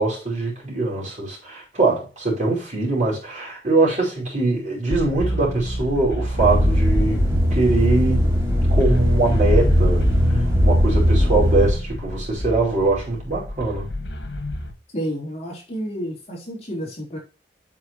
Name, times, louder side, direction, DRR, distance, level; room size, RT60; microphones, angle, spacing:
voice 1, 0.0-8.3 8.7-13.9, right 3 dB, 45° right, 5.2 m, -22 dB
sound 1, 4.9-14.7, equal, 85° left, 1.8 m, -29 dB
sound 2, 6.4-11.7, equal, 15° right, 3.2 m, -19 dB
voice 2, 14.9-17.2, equal, 40° left, 3.8 m, -30 dB
8.4 x 7.4 x 3.1 m
head